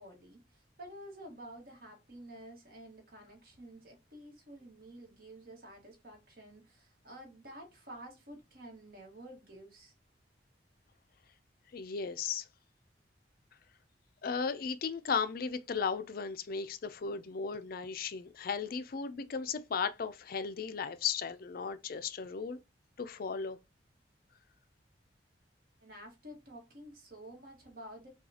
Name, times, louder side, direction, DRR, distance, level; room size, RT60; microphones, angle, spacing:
voice 1, 0.0-9.9 25.8-28.1, right 1 dB, 55° right, 1.6 m, -51 dB
voice 2, 11.7-12.4 14.2-22.6 23.0-23.6, left 6 dB, 55° left, 0.4 m, -36 dB
5.5 x 2.4 x 2.8 m
head